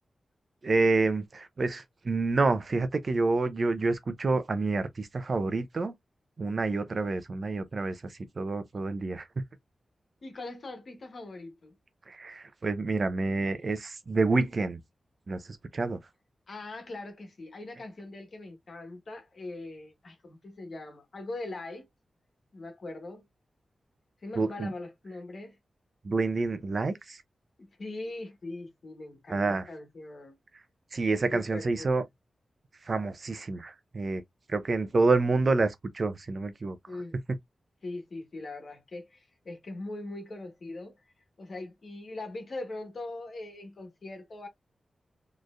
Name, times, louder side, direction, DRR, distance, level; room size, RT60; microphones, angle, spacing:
voice 1, 0.6-5.9 6.4-9.4 12.1-14.8 15.3-15.4 15.7-16.0 24.4-24.7 26.0-27.2 29.3-29.7 30.9-32.0 32.9-34.2 34.5-36.8, right 3 dB, 45° right, 0.7 m, -28 dB
voice 2, 10.2-11.8 16.5-21.9 22.5-23.3 24.2-25.6 27.6-30.4 31.3-31.9 36.9-37.2 37.8-41.0 41.4-44.5, left 2 dB, 50° left, 1.4 m, -41 dB
4.2 x 3.2 x 2.5 m
wide cardioid pair, 110°, 0 cm